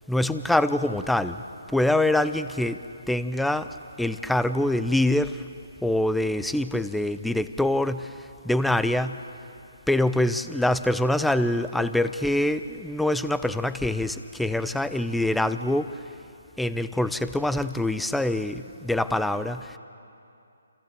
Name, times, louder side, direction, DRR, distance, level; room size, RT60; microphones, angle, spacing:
voice 1, 0.1-1.4 1.7-3.7 4.0-5.4 5.8-9.2 9.9-16.0 16.6-19.8, left 1 dB, ahead, 12 dB, 0.7 m, -25 dB
29.5 x 27.5 x 7.0 m, 2.6 s
figure-of-eight pair, 145°, 0 cm